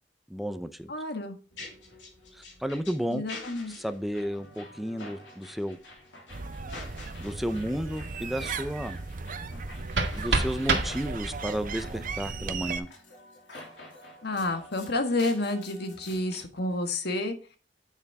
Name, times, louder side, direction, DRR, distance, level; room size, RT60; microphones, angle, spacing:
voice 1, 0.3-0.9 2.3-3.2 3.7-5.8 7.2-9.0 10.1-12.9, equal, ahead, 10 dB, 0.6 m, -32 dB
voice 2, 0.9-1.4 3.1-3.7 14.2-17.4, left 2 dB, 60° left, 6 dB, 1.6 m, -30 dB
sound 1, 1.5-16.4, left 2 dB, 80° left, 2.8 m, -48 dB
sound 2, 6.3-12.8, right 4 dB, 50° right, 0.7 m, -37 dB
sound 3, 9.5-11.5, right 3 dB, 85° right, 1.8 m, -29 dB
8.2 x 7.0 x 3.5 m, 0.36 s
head